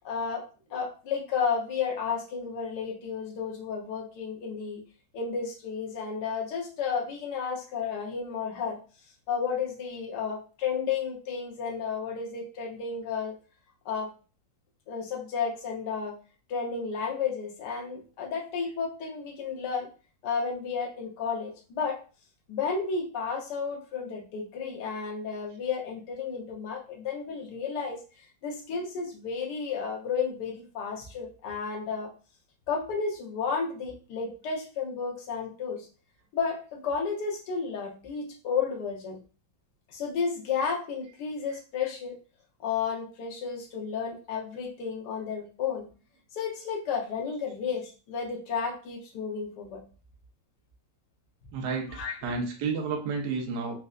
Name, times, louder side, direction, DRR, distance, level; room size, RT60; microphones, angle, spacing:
voice 1, 0.0-0.4 0.7-4.8 5.1-8.8 9.3-13.3 13.8-14.1 14.9-16.1 16.5-19.9 20.2-22.0 22.5-28.0 28.4-32.1 32.7-35.9 36.3-39.2 39.9-42.2 42.6-45.8 46.3-49.8 51.9-52.3, left 6 dB, 60° left, -1 dB, 1.4 m, -32 dB
voice 2, 51.5-53.8, right 4 dB, 70° right, 1 dB, 1.1 m, -31 dB
4.2 x 2.5 x 2.4 m, 0.36 s
omnidirectional pair, 2.2 m